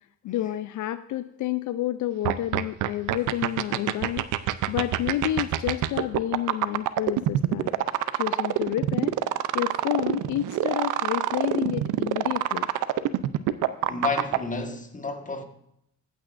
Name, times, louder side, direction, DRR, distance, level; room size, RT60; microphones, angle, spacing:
voice 1, 0.2-4.3 4.7-7.7 8.1-9.2 9.5-12.7, left 13 dB, 75° left, 0.5 m, -29 dB
sound 1, 2.2-14.4, right 13 dB, 80° right, 0.6 m, -25 dB
voice 2, 13.8-15.4, left 3 dB, 25° left, 1.5 m, -30 dB
14.5 x 9.0 x 2.6 m
cardioid pair, 90°, 30 cm